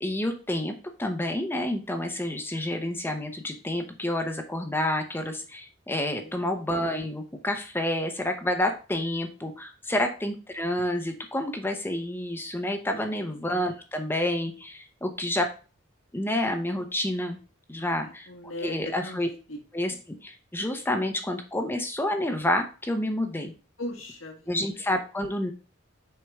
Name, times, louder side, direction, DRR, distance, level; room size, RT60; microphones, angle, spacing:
voice 1, 0.0-0.7 1.0-15.5 16.1-17.4 17.7-18.3 18.6-19.3 19.7-23.5 24.5-25.5, left 1 dB, 10° left, 5 dB, 0.8 m, -29 dB
voice 2, 17.8-19.2 19.5-19.6 23.8-24.7, left 1 dB, 80° left, 2 dB, 1.8 m, -39 dB
6.4 x 4.6 x 3.5 m, 0.35 s
head